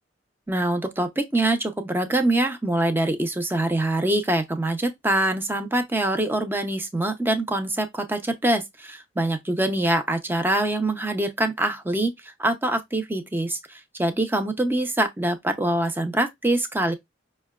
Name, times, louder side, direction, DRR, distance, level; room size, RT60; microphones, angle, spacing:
voice 1, 0.5-16.9, right 1 dB, 10° right, 0.5 m, -24 dB
5.4 x 2.1 x 2.2 m
head